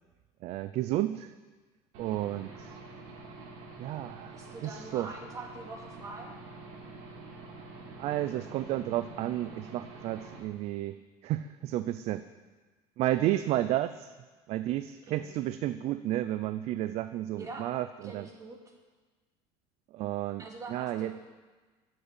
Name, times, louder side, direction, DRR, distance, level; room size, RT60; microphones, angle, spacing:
voice 1, 0.4-1.3 2.0-2.8 3.8-5.1 8.0-12.2 13.0-14.1 14.5-18.3 19.9-20.4 20.7-21.1, right 14 dB, 50° right, 12 dB, 0.5 m, -32 dB
Aircraft / Engine, 1.9-10.4, right 3 dB, 70° right, 3.6 m, -47 dB
voice 2, 4.3-6.3 15.1-15.3 17.3-17.7 18.0-18.7 20.4-21.3, right 3 dB, 25° right, 0 dB, 2.5 m, -44 dB
13.5 x 7.7 x 8.3 m, 1.3 s
cardioid pair, 135°, 13 cm